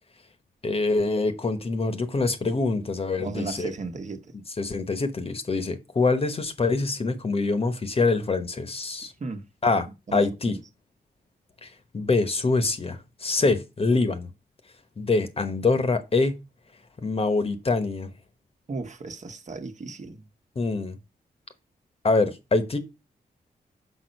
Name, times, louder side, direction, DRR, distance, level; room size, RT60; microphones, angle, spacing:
voice 1, 0.6-3.7 4.5-9.1 9.6-10.6 11.6-11.7 11.9-14.3 15.0-16.4 17.0-18.1 20.6-21.0 22.0-22.8, left 3 dB, 35° left, 1.1 m, -25 dB
voice 2, 3.2-4.2 9.2-9.4 10.1-10.3 18.7-20.2, right 3 dB, 45° right, 1.2 m, -35 dB
6.4 x 5.3 x 5.3 m
wide cardioid pair, 105°, 16 cm